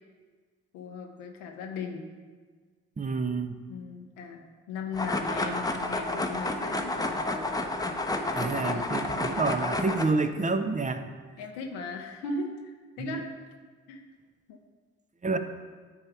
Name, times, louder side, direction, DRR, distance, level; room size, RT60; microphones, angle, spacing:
voice 1, 0.7-2.1 3.7-7.5 8.1-9.2 11.4-13.3 13.9-14.0 14.5-14.6, left 4 dB, 85° left, 2 dB, 0.7 m, -38 dB
voice 2, 3.0-3.6 8.3-11.1 13.0-13.2 15.2-15.4, right 3 dB, 25° right, 9 dB, 0.7 m, -28 dB
sound 1, 4.9-10.1, left 2 dB, 10° left, 0.8 m, -30 dB
9.6 x 3.5 x 4.7 m, 1.5 s
hypercardioid pair, 45°, 31 cm